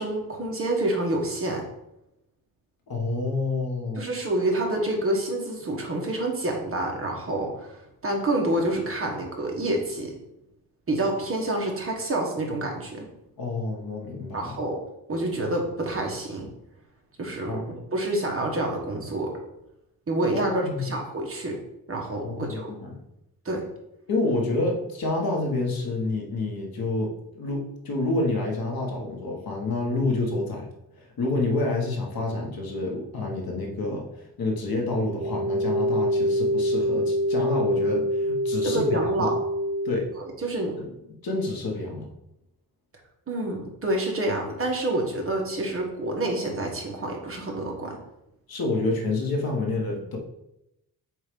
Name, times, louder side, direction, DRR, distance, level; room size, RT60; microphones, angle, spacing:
voice 1, 0.0-1.6 4.0-10.1 10.9-13.1 14.3-14.8 15.1-16.5 17.2-17.6 17.9-19.3 20.1-21.6 21.9-22.7 23.4-23.6 38.6-39.3 40.2-40.7 43.3-48.0, right 1 dB, 35° right, 0 dB, 1.3 m, -28 dB
voice 2, 2.9-4.1 13.4-14.5 17.5-17.8 20.3-20.8 22.2-23.0 24.1-30.7 30.9-39.3 39.8-40.1 40.8-40.9 41.2-42.1 48.5-50.2, left 2 dB, 65° left, 0 dB, 1.5 m, -28 dB
sound 1, 35.0-40.0, equal, 55° right, 1.5 m, -25 dB
8.0 x 2.7 x 5.3 m, 0.85 s
wide cardioid pair, 150°, 38 cm